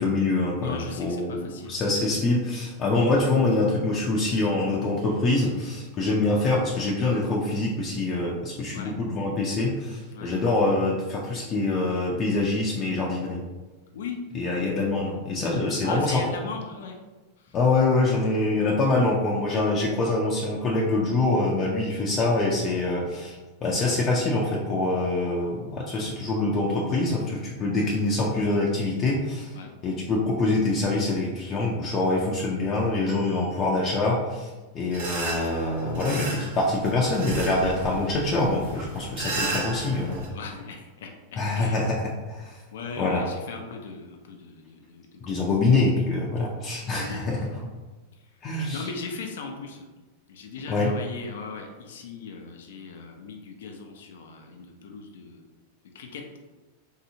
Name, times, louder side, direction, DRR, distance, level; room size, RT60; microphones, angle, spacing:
voice 1, 0.0-13.4 14.3-16.2 17.5-29.5 29.8-40.2 41.4-42.6 43.0-43.2 45.2-47.7 48.4-48.8 50.7-50.9, left 2 dB, 30° left, -3 dB, 0.5 m, -25 dB
voice 2, 0.6-1.8 8.7-9.0 10.1-10.4 13.9-14.2 15.8-17.0 17.4-17.6 29.5-29.7 40.2-41.9 42.7-45.5 46.9-47.4 48.4-49.9 50.3-55.4 55.9-56.4, left 4 dB, 80° left, 3 dB, 0.5 m, -39 dB
sound 1, 33.1-34.5 36.9-37.1 38.4-38.5, right 2 dB, 20° right, 0.9 m, -44 dB
sound 2, 34.9-40.3, right 2 dB, 60° right, 0.9 m, -34 dB
3.2 x 2.8 x 2.7 m, 1.2 s
supercardioid pair, 135°, 0 cm